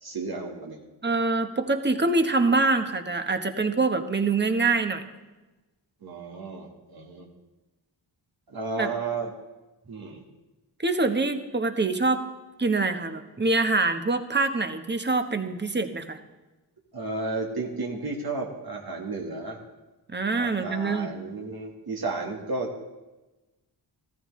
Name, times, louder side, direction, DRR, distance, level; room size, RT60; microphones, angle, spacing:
voice 1, 0.0-0.8 6.0-7.3 8.5-9.3 9.9-10.2 16.9-19.6 20.3-22.9, right 3 dB, 60° right, 0 dB, 1.6 m, -33 dB
voice 2, 1.0-5.0 8.8-8.9 10.8-12.2 12.6-16.2 20.1-21.1, right 3 dB, 25° right, 7 dB, 1.1 m, -25 dB
14.5 x 14.0 x 3.2 m, 1.1 s
cardioid pair, 65°, 42 cm